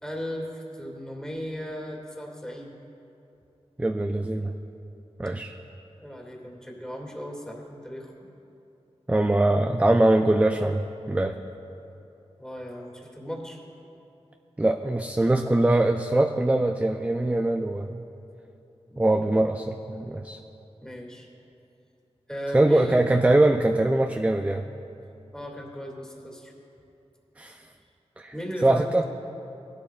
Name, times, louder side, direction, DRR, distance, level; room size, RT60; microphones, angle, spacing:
voice 1, 0.0-2.8 6.0-8.3 12.4-13.6 20.8-21.3 22.3-23.1 25.3-26.5 28.3-28.8, equal, 5° left, -2 dB, 2.1 m, -36 dB
voice 2, 3.8-4.5 5.2-5.5 9.1-11.4 14.6-18.0 19.0-20.4 22.5-24.6 27.4-27.6 28.2-28.3 28.6-29.0, right 2 dB, 15° right, 5 dB, 0.4 m, -22 dB
19.0 x 12.5 x 2.4 m, 2.9 s
wide cardioid pair, 85°, 11 cm